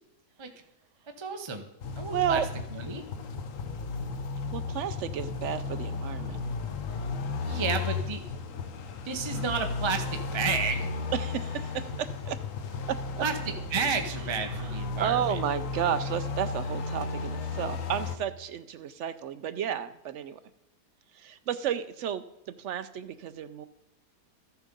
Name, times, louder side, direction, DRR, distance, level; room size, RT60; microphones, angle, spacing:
voice 1, 1.2-1.6 1.9-2.4 2.7-3.0 7.4-8.2 9.0-10.9 13.2-13.4 13.7-15.2, right 5 dB, 30° right, 6 dB, 0.5 m, -31 dB
sound 1, 1.8-18.2, left 4 dB, 60° left, 1.1 m, -34 dB
voice 2, 2.1-2.5 4.5-6.4 7.5-7.6 11.1-12.4 12.9-13.3 14.6-20.4 21.1-23.7, right 9 dB, 80° right, 11 dB, 0.6 m, -32 dB
13.5 x 7.1 x 5.2 m, 0.93 s
omnidirectional pair, 1.8 m